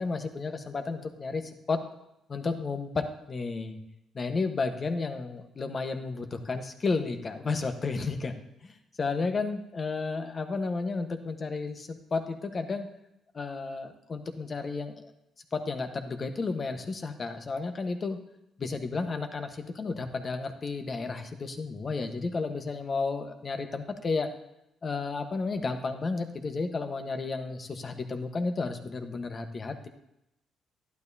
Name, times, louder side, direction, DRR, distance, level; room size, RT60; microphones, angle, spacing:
voice 1, 0.0-1.8 2.3-3.8 4.1-8.3 8.6-12.9 13.3-15.0 15.5-18.2 18.6-24.3 24.8-29.9, left 4 dB, 40° left, 6 dB, 1.2 m, -32 dB
12.0 x 11.5 x 2.8 m, 0.85 s
cardioid pair, 90°, 0 cm